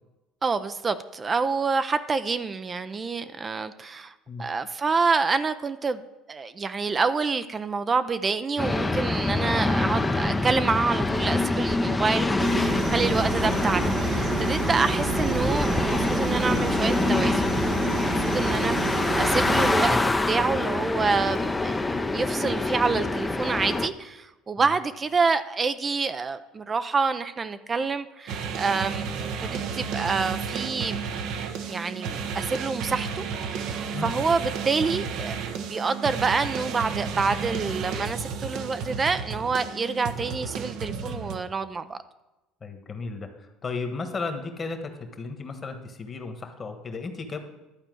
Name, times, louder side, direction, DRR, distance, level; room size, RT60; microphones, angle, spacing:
voice 1, 0.4-6.0 6.3-20.0 20.3-21.8 22.1-31.0 31.7-42.0, right 4 dB, 30° right, 11 dB, 0.5 m, -27 dB
sound 1, 8.6-23.9, left 2 dB, 15° left, 0.6 m, -25 dB
sound 2, 12.4-19.7, right 5 dB, 50° right, 1.4 m, -30 dB
sound 3, 28.3-41.4, right 6 dB, 70° right, 0.9 m, -32 dB
voice 2, 42.6-47.4, left 4 dB, 30° left, 6 dB, 1.4 m, -34 dB
11.5 x 4.4 x 7.7 m, 1.0 s
supercardioid pair, 85°, 0 cm